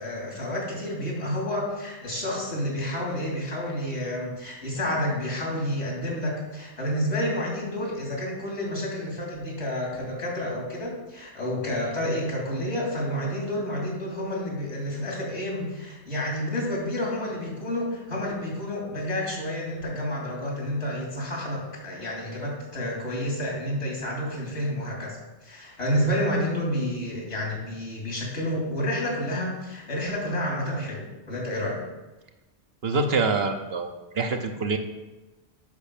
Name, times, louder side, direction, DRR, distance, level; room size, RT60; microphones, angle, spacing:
voice 1, 0.0-25.2 25.4-31.8, left 1 dB, 80° left, -2 dB, 3.2 m, -29 dB
voice 2, 32.8-33.9 34.1-34.8, right 3 dB, 65° right, 5 dB, 1.1 m, -25 dB
8.2 x 6.2 x 6.7 m, 1.1 s
omnidirectional pair, 1.1 m